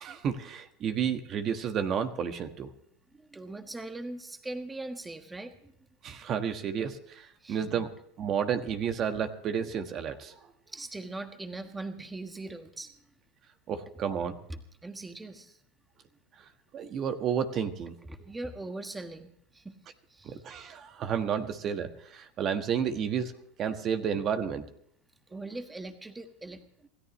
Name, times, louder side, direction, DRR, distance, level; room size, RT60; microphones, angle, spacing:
voice 1, 0.0-2.7 6.0-7.9 8.2-10.4 13.7-14.4 16.7-17.9 20.2-23.3 23.6-24.7, right 7 dB, 40° right, 7 dB, 1.5 m, -31 dB
voice 2, 3.1-5.7 7.4-7.8 10.7-13.1 14.5-15.6 18.1-19.8 20.1-20.4 25.3-26.9, right 2 dB, 10° right, 7 dB, 1.5 m, -41 dB
27.0 x 14.0 x 3.2 m, 0.70 s
hypercardioid pair, 110°, 0 cm